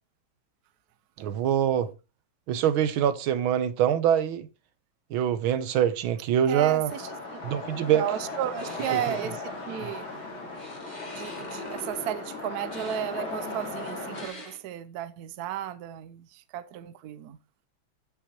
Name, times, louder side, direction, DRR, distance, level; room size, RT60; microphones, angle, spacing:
voice 1, 1.2-1.9 2.5-4.5 5.1-6.9 7.4-8.0 9.8-9.9, right 10 dB, 85° right, 1.6 m, -24 dB
voice 2, 6.5-7.4 7.9-10.1 11.1-17.4, right 12 dB, 65° right, 1.0 m, -34 dB
sound 1, 6.9-14.3, left 3 dB, 90° left, 4.3 m, -37 dB
sound 2, 8.5-9.2 10.5-12.0 12.7-13.0 14.1-14.6, left 1 dB, 25° left, 2.7 m, -45 dB
13.0 x 5.8 x 3.0 m
omnidirectional pair, 2.2 m